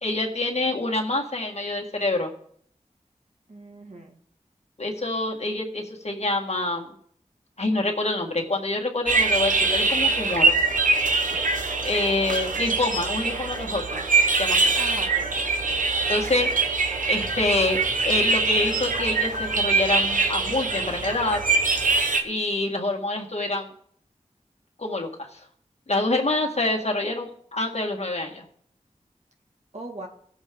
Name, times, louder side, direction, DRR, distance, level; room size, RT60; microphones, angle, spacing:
voice 1, 0.0-2.3 4.8-6.9 7.6-10.6 11.8-14.0 14.4-14.6 16.1-17.8 18.0-21.4 22.2-23.7 24.8-25.4 25.9-28.4, left 2 dB, 55° left, 0 dB, 1.9 m, -26 dB
voice 2, 3.5-4.1 12.1-12.6 14.8-15.4 29.7-30.1, right 2 dB, 60° right, 1 dB, 2.1 m, -39 dB
sound 1, 9.1-22.2, right 3 dB, 90° right, 1.0 m, -23 dB
16.5 x 7.2 x 3.7 m, 0.62 s
wide cardioid pair, 50°, 13 cm